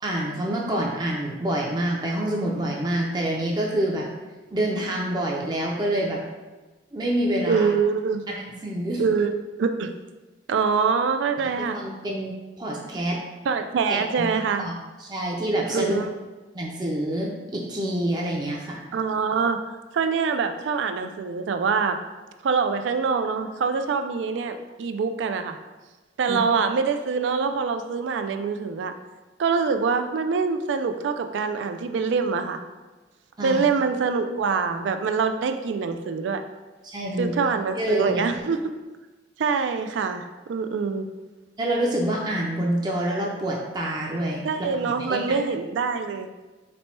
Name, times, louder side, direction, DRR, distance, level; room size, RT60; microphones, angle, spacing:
voice 1, 0.0-4.1 4.5-6.2 6.9-7.7 8.3-8.4 8.6-9.0 11.4-13.2 13.9-14.7 15.0-16.0 16.5-18.8 26.3-26.4 33.4-33.6 36.8-37.3 37.8-38.2 41.6-44.4 44.7-45.2, right 1 dB, 25° right, -2 dB, 0.4 m, -27 dB
voice 2, 7.5-8.2 9.0-9.9 10.5-11.8 13.5-14.6 15.7-16.1 18.9-19.6 19.9-22.0 22.4-25.6 26.2-28.9 29.4-32.6 33.4-36.4 37.2-38.6 39.4-41.1 44.4-46.3, right 5 dB, 90° right, 7 dB, 0.3 m, -24 dB
4.2 x 2.2 x 4.2 m, 1.2 s
head